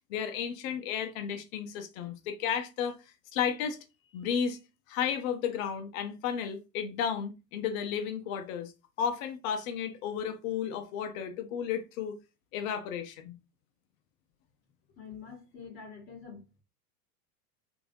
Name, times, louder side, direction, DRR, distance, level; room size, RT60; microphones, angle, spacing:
voice 1, 0.1-3.0 3.3-3.8 4.1-4.6 4.9-8.7 9.0-12.2 12.5-13.4, left 8 dB, 65° left, 0.7 m, -33 dB
voice 2, 15.0-16.6, left 6 dB, 25° left, 1.3 m, -46 dB
3.0 x 2.6 x 2.6 m
hypercardioid pair, 95°, 45 cm